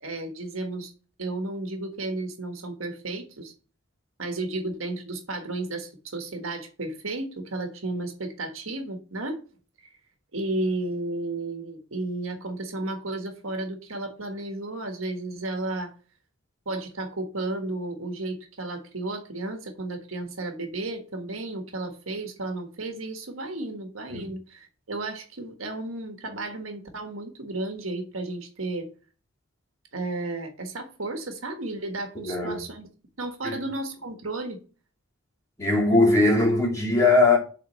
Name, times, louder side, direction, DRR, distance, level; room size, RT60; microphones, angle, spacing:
voice 1, 0.0-0.9 1.2-3.5 4.2-9.4 10.3-15.9 16.6-28.9 29.9-32.9 33.2-34.6, right 2 dB, 85° right, 1.5 m, -33 dB
voice 2, 32.2-32.6 33.4-33.6 35.6-37.4, left 2 dB, 15° left, 3.0 m, -20 dB
7.3 x 4.1 x 6.4 m
head